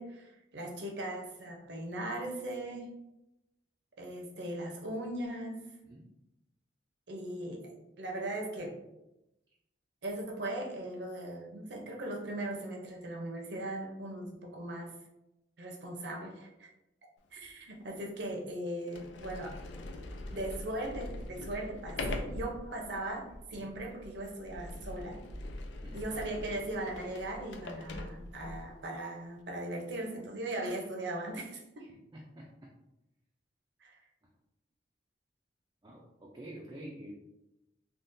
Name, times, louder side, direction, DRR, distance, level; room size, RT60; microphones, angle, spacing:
voice 1, 0.0-2.9 4.0-5.6 7.1-8.8 10.0-14.9 15.6-16.7 17.3-19.5 20.3-25.2 25.9-31.9 33.8-34.0, right 1 dB, 65° right, 1 dB, 0.7 m, -39 dB
Sliding door, 17.4-17.5 18.3-18.4 18.8-28.8, left 2 dB, 75° left, 0.4 m, -42 dB
voice 2, 31.8-32.7 35.8-37.1, right 1 dB, 20° right, -2 dB, 0.4 m, -48 dB
3.6 x 2.3 x 2.6 m, 0.90 s
head